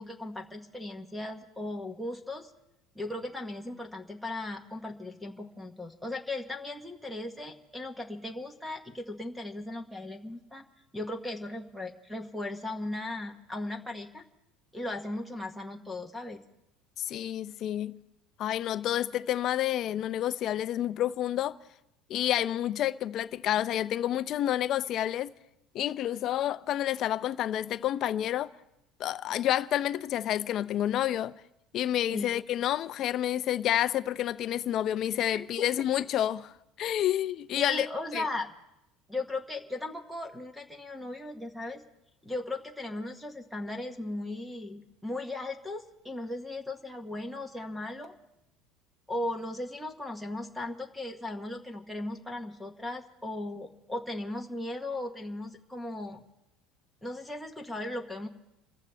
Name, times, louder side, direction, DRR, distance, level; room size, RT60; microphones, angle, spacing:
voice 1, 0.0-2.5 2.9-10.6 10.9-14.2 14.7-16.4 32.1-32.4 35.3-35.4 37.6-38.5 39.1-41.8 42.2-48.1 49.1-56.2 57.0-58.3, left 2 dB, ahead, 1.1 m, -37 dB
voice 2, 17.0-18.0 18.4-21.6 22.1-25.3 25.7-28.5 29.0-31.4 31.7-37.9 38.1-38.3, left 12 dB, 40° left, 0.5 m, -29 dB
27.0 x 14.5 x 3.4 m
cardioid pair, 155°, 0 cm